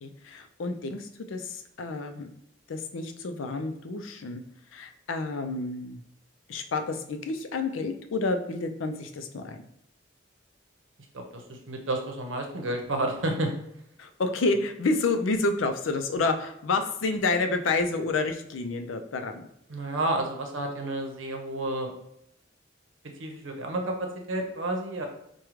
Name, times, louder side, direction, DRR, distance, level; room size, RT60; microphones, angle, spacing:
voice 1, 0.0-2.3 2.7-4.4 4.7-6.0 6.5-9.6 14.0-19.5, left 3 dB, 90° left, 6 dB, 0.4 m, -29 dB
voice 2, 11.1-13.5 19.7-21.9 23.2-25.1, right 1 dB, 90° right, 3 dB, 0.7 m, -30 dB
4.8 x 2.2 x 3.0 m, 0.76 s
head